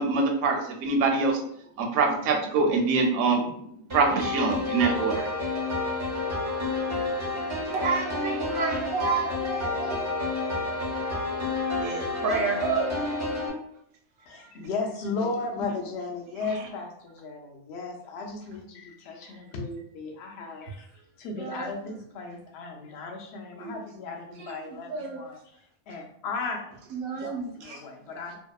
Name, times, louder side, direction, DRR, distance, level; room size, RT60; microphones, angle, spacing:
voice 1, 0.0-1.4 1.8-3.5 3.9-5.3, right 4 dB, 70° right, 2 dB, 0.8 m, -24 dB
sound 1, 3.9-13.5, left 3 dB, 40° right, 0.4 m, -30 dB
voice 2, 7.7-10.0 11.7-13.2 21.4-21.7 23.6-23.8 24.4-25.2 26.9-27.8, right 4 dB, 90° right, 0 dB, 1.1 m, -30 dB
voice 3, 14.3-20.9 21.2-25.4 25.9-26.7 27.1-28.4, left 3 dB, 65° left, 1 dB, 0.7 m, -35 dB
2.7 x 2.1 x 2.2 m, 0.70 s
omnidirectional pair, 1.5 m